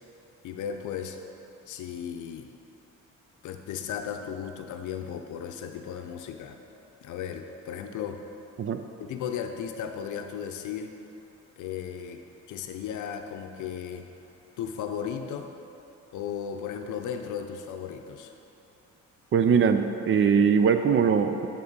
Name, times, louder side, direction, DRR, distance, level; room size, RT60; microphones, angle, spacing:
voice 1, 0.4-1.2 1.7-2.5 3.4-6.6 7.0-8.2 9.0-10.9 11.6-12.2 12.5-14.1 14.6-15.5 16.1-18.3, left 8 dB, 80° left, 6 dB, 0.6 m, -35 dB
voice 2, 19.3-21.5, right 6 dB, 45° right, 8 dB, 0.5 m, -21 dB
9.4 x 3.7 x 5.3 m, 2.9 s
cardioid pair, 90°, 30 cm